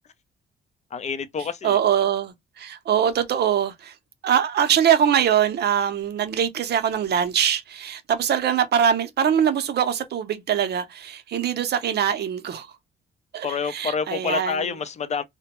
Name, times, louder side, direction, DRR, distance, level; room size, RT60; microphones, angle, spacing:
voice 1, 0.9-1.8 13.4-15.2, left 6 dB, 35° left, 0.4 m, -28 dB
voice 2, 1.6-3.9 4.2-12.7 13.3-14.7, right 8 dB, 55° right, 0.6 m, -23 dB
2.2 x 2.1 x 2.8 m
cardioid pair, 90°, 20 cm